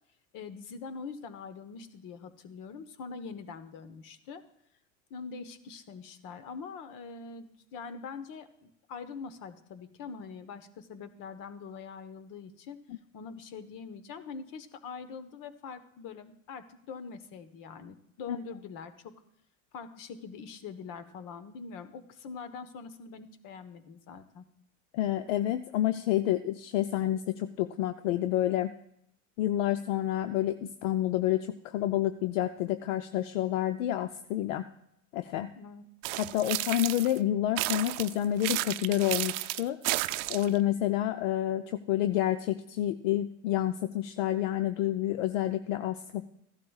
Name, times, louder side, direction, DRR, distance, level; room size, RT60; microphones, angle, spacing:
voice 1, 0.3-4.4 5.1-12.8 13.1-19.1 19.7-24.5 31.8-31.9 35.5-35.9, left 5 dB, 55° left, 11 dB, 1.2 m, -43 dB
voice 2, 24.9-28.7 29.4-34.6 35.1-35.5 36.2-39.8 40.3-46.3, left 13 dB, 75° left, 10 dB, 0.6 m, -29 dB
sound 1, 36.0-37.2 37.6-40.6, right 19 dB, 65° right, 0.6 m, -32 dB
15.5 x 12.0 x 2.4 m, 0.78 s
hypercardioid pair, 90°, 39 cm